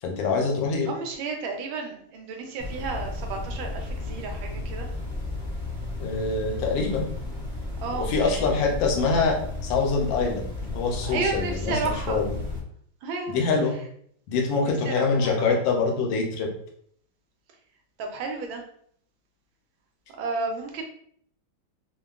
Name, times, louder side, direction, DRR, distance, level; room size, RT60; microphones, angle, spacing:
voice 1, 0.0-0.9 6.0-7.1 7.9-12.4 13.3-13.7 14.3-16.5, left 4 dB, 75° left, 1 dB, 1.3 m, -25 dB
voice 2, 0.9-4.9 7.8-8.4 11.0-12.2 13.0-13.4 14.6-15.6 18.0-18.6 20.2-20.8, right 4 dB, 90° right, 2 dB, 1.4 m, -32 dB
sound 1, 2.6-12.6, left 2 dB, 5° left, 0.6 m, -33 dB
3.3 x 2.2 x 2.3 m, 0.64 s
omnidirectional pair, 2.1 m